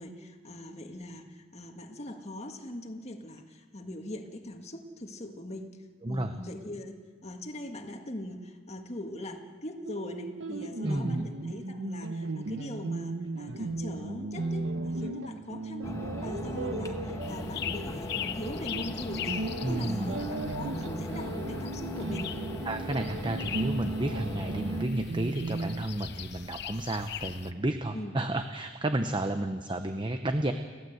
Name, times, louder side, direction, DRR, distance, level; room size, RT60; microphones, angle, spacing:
voice 1, 0.0-5.8 6.1-22.3 27.9-28.1, left 1 dB, 35° left, 4 dB, 1.7 m, -41 dB
voice 2, 6.0-6.3 10.8-11.3 19.6-20.1 22.7-30.5, right 1 dB, 25° right, 7 dB, 0.8 m, -32 dB
sound 1, 9.8-25.9, right 2 dB, 70° right, 0.9 m, -36 dB
sound 2, 15.8-24.9, left 1 dB, 20° left, 1.3 m, -38 dB
sound 3, 17.2-27.5, left 9 dB, 60° left, 0.8 m, -41 dB
30.0 x 12.0 x 8.0 m, 1.5 s
head